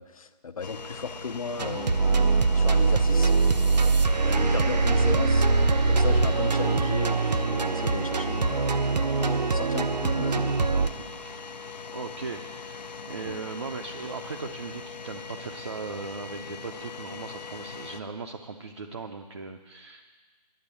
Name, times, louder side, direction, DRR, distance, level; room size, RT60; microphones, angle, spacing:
voice 1, 0.0-3.3 4.2-5.5 5.9-8.9 9.2-10.8 13.2-13.4, left 5 dB, 55° left, 11 dB, 0.7 m, -36 dB
sound 1, 0.6-18.0, left 4 dB, 90° left, 0.9 m, -41 dB
sound 2, 1.6-10.9, right 3 dB, 85° right, 0.7 m, -23 dB
voice 2, 4.8-5.1 10.9-11.4 11.9-20.0, right 4 dB, 40° right, 3 dB, 0.6 m, -38 dB
11.0 x 7.9 x 8.3 m, 1.4 s
hypercardioid pair, 175°, 21 cm